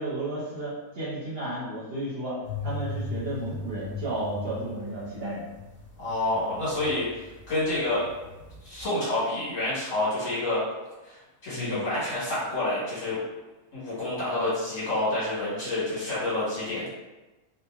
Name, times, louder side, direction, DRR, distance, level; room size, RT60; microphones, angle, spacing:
voice 1, 0.0-2.4 2.6-5.4 11.5-11.9, right 1 dB, 50° right, -7 dB, 0.8 m, -33 dB
sound 1, 2.4-7.5 7.7-8.8, left 3 dB, 5° right, 0.8 m, -37 dB
voice 2, 6.0-8.1 8.6-10.6 11.0-13.2 13.7-16.9, left 2 dB, 65° left, -9 dB, 1.6 m, -28 dB
2.8 x 2.5 x 2.3 m, 1.1 s
omnidirectional pair, 1.5 m